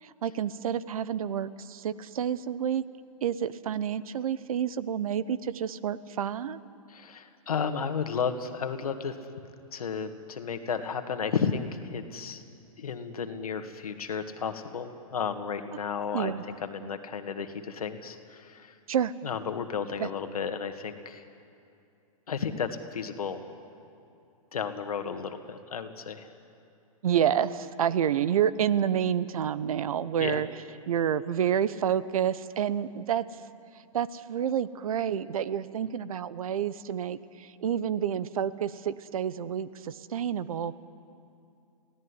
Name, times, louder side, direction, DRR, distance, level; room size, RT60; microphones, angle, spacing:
voice 1, 0.0-2.8 3.2-6.6 16.1-16.4 18.9-19.1 20.0-20.1 27.0-30.5 30.9-33.2 33.9-40.8, right 9 dB, 75° right, 17 dB, 0.9 m, -29 dB
voice 2, 6.9-9.2 9.7-12.4 12.8-16.3 16.6-18.7 19.2-21.2 22.3-23.4 24.5-26.3 30.2-30.4, left 6 dB, 85° left, 8 dB, 1.8 m, -33 dB
23.0 x 16.5 x 9.8 m, 2.6 s
hypercardioid pair, 130°, 18 cm